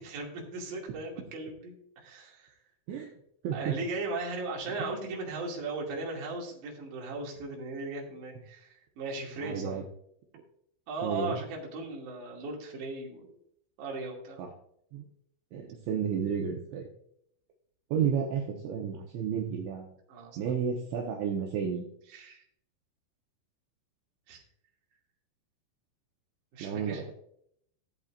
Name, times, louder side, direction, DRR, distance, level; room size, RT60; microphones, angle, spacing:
voice 1, 0.0-2.5 3.5-9.8 10.9-13.4 13.8-14.4 20.1-20.4 22.1-22.4 24.3-24.4 26.5-27.1, right 3 dB, 45° right, -2 dB, 3.1 m, -37 dB
voice 2, 3.4-3.8 4.8-4.9 9.4-9.8 11.0-11.4 14.4-14.5 14.9-15.1 15.5-16.9 17.9-19.9 20.4-21.8 26.6-27.1, right 7 dB, 70° right, 0 dB, 3.1 m, -32 dB
16.0 x 8.1 x 2.5 m, 0.70 s
omnidirectional pair, 6.0 m